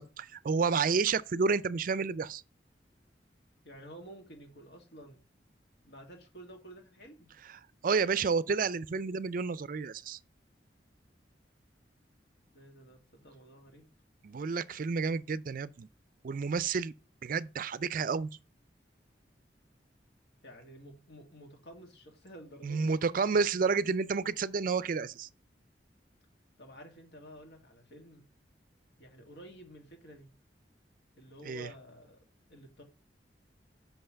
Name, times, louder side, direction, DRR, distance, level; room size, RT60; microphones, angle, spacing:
voice 1, 0.0-2.4 7.5-10.2 14.2-15.9 16.2-16.9 17.2-18.3 22.6-25.3 31.4-31.7, right 5 dB, 50° right, 0.4 m, -30 dB
voice 2, 3.6-5.2 5.8-7.3 12.5-13.9 20.4-22.9 26.6-28.2 29.0-30.3 31.2-32.2 32.5-32.8, right 1 dB, 70° left, 2.3 m, -51 dB
5.8 x 5.6 x 6.7 m
head